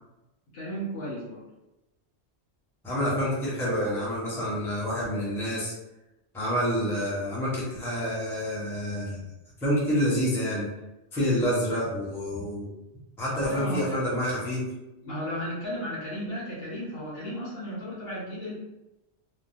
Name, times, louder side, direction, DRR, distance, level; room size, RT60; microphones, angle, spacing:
voice 1, 0.5-1.5 13.5-14.0 15.0-18.5, equal, 60° left, -8 dB, 1.5 m, -34 dB
voice 2, 2.8-5.7 6.3-9.2 9.6-10.7 11.1-12.7 13.2-14.6, equal, ahead, -8 dB, 0.7 m, -28 dB
3.3 x 2.0 x 2.6 m, 0.96 s
omnidirectional pair, 1.1 m